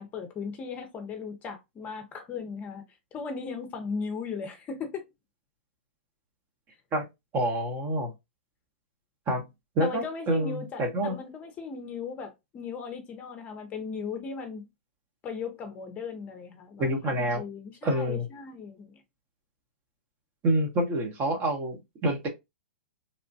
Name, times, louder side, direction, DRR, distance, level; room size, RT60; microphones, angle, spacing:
voice 1, 0.0-2.8 3.1-5.0 9.8-14.7 15.2-19.0, left 5 dB, 25° left, 0.6 m, -37 dB
voice 2, 7.3-8.1 9.3-9.4 9.8-11.2 16.8-17.4 17.8-18.3 20.4-22.3, right 1 dB, 30° right, 0.8 m, -27 dB
3.0 x 2.1 x 2.6 m
hypercardioid pair, 125°, 6 cm